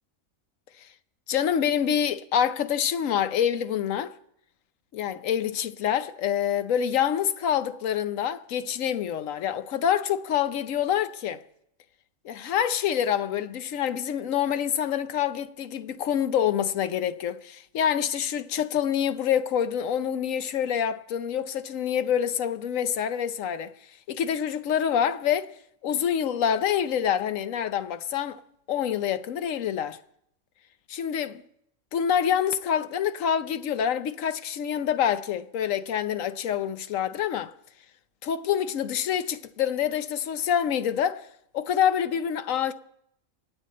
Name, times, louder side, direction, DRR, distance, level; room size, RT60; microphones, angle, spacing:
voice 1, 1.3-4.1 4.9-11.4 12.2-23.7 24.1-25.5 25.8-28.4 28.7-30.0 30.9-31.4 31.9-37.5 38.2-41.2 41.5-42.7, left 9 dB, 75° left, 1.1 m, -26 dB
26.5 x 8.9 x 4.2 m
omnidirectional pair, 1.4 m